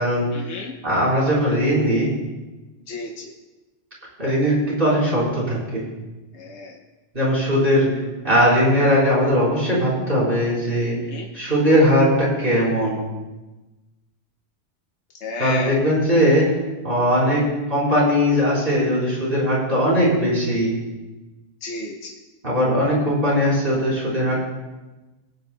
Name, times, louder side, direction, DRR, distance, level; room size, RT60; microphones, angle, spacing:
voice 1, 0.3-0.8 2.9-3.3 6.3-6.7 11.1-11.3 15.2-15.8 21.6-22.1, left 3 dB, 70° left, 0 dB, 1.2 m, -32 dB
voice 2, 0.8-2.1 4.2-5.8 7.1-7.9 8.2-11.0 11.3-13.0 15.4-16.6 16.8-20.7 22.4-24.4, equal, 50° right, -6 dB, 4.2 m, -19 dB
23.5 x 9.2 x 2.2 m, 1.1 s
omnidirectional pair, 1.2 m